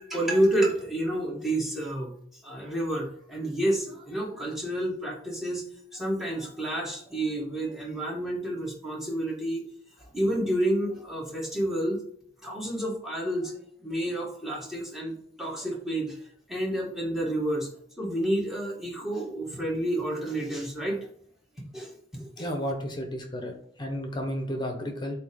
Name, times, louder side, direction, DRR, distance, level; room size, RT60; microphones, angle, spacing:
voice 1, 0.0-2.1 2.4-5.6 5.9-9.7 10.0-12.0 12.4-16.2 16.5-17.7 18.0-21.1 21.7-22.5, right 1 dB, ahead, -3 dB, 1.6 m, -29 dB
voice 2, 22.4-25.2, equal, 25° left, 4 dB, 1.1 m, -32 dB
7.8 x 3.0 x 5.2 m, 0.65 s
head